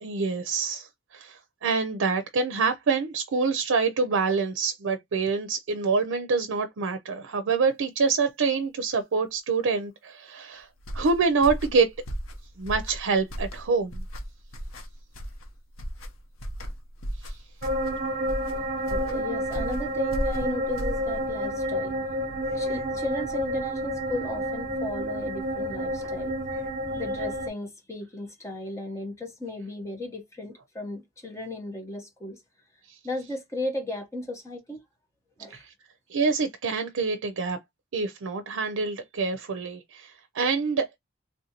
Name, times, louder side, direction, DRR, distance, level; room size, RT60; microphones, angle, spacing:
voice 1, 0.0-10.7 10.9-11.9 12.6-14.0 17.2-17.4 32.9-33.0 35.5-35.7 36.1-37.6 37.9-40.9, right 4 dB, 85° right, 0.5 m, -26 dB
sound 1, 10.8-21.4, equal, 90° left, 0.8 m, -36 dB
sound 2, 17.6-27.5, equal, 40° right, 0.6 m, -30 dB
voice 2, 18.9-21.9 22.4-26.6 26.9-32.4 33.0-34.8 35.4-35.6, left 1 dB, 15° left, 0.9 m, -35 dB
3.3 x 2.5 x 2.8 m
head